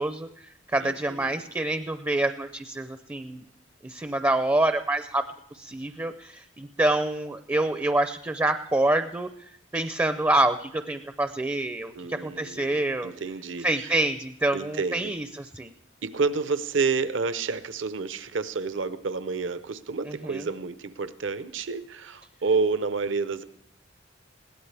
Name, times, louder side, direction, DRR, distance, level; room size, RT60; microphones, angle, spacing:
voice 1, 0.0-3.4 3.8-5.2 5.5-13.1 13.6-15.7 20.0-20.5, right 2 dB, 15° right, 9 dB, 0.5 m, -27 dB
voice 2, 0.8-1.4 11.9-13.9 14.5-15.1 16.0-23.4, right 4 dB, 75° right, 13 dB, 0.7 m, -29 dB
21.0 x 16.5 x 3.4 m, 0.73 s
head